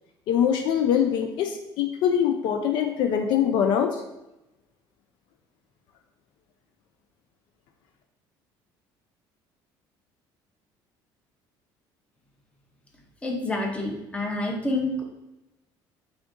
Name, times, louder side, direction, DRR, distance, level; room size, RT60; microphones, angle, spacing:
voice 1, 0.3-4.0, left 8 dB, 60° left, 5 dB, 0.4 m, -23 dB
voice 2, 13.2-15.0, left 2 dB, 15° left, 1 dB, 0.6 m, -28 dB
5.0 x 3.5 x 2.5 m, 0.95 s
cardioid pair, 155°, 9 cm